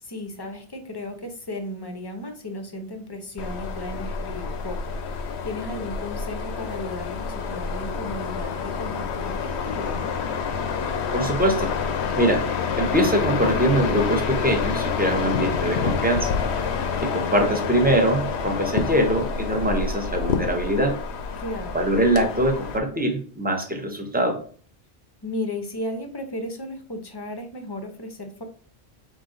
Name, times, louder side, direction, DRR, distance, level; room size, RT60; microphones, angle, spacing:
voice 1, 0.0-10.1 21.4-21.9 25.2-28.4, left 1 dB, 25° left, 5 dB, 0.7 m, -35 dB
sound 1, 3.4-22.8, left 6 dB, 75° left, 0.9 m, -28 dB
voice 2, 11.1-11.7 12.1-12.5 12.8-16.3 17.0-21.0 21.7-24.4, right 1 dB, 10° right, 3 dB, 0.7 m, -23 dB
5.0 x 2.7 x 3.8 m, 0.44 s
omnidirectional pair, 1.1 m